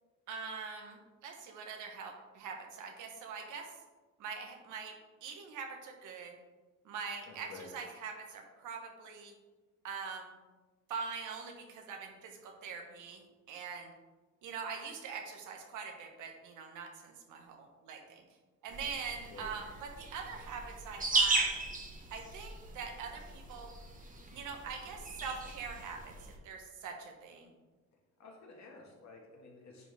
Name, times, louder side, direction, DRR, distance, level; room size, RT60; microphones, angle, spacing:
voice 1, 0.3-3.7 4.2-6.4 6.8-9.3 9.8-10.3 10.9-13.2 13.5-13.9 14.4-18.2 18.6-21.5 22.1-23.7 24.3-26.1 26.4-27.5, right 5 dB, 85° right, 3 dB, 1.3 m, -43 dB
voice 2, 7.3-7.7 19.3-19.5 28.2-29.9, left 4 dB, 65° left, 0 dB, 1.9 m, -52 dB
sound 1, 18.7-26.4, right 3 dB, 25° right, 1.2 m, -37 dB
9.8 x 4.3 x 3.5 m, 1.2 s
cardioid pair, 90°, 30 cm